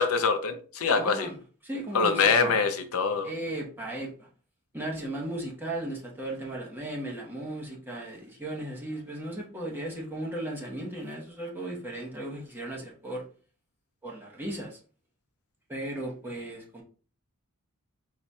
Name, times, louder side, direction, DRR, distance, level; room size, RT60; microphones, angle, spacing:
voice 1, 0.0-1.3 1.9-3.3, left 5 dB, 70° left, 0.6 m, -24 dB
voice 2, 0.9-1.3 1.6-2.6 3.2-4.3 4.7-13.2 14.0-14.8 15.7-16.8, right 1 dB, 10° right, 1.0 m, -36 dB
4.0 x 2.4 x 4.1 m
head